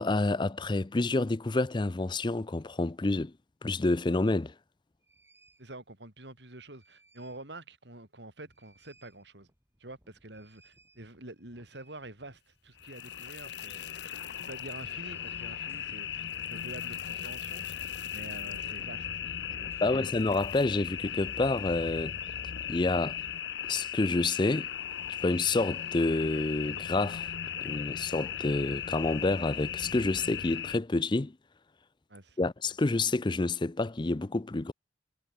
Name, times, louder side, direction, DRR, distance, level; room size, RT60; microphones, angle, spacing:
voice 1, 0.0-3.3 3.6-4.5 19.8-22.1 22.7-23.2 23.7-24.7 25.2-27.3 27.6-31.3 32.4-34.7, left 2 dB, 25° left, 0.5 m, -28 dB
sound 1, 5.0-5.7 6.5-7.5 7.9-8.0 8.3-22.2, right 1 dB, 15° right, 4.9 m, -65 dB
voice 2, 5.6-9.5 9.8-13.9 14.4-17.8 18.1-19.1 19.5-20.1 32.1-32.5, right 2 dB, 70° right, 4.7 m, -47 dB
sound 2, 12.8-30.8, left 9 dB, 70° left, 0.8 m, -37 dB
head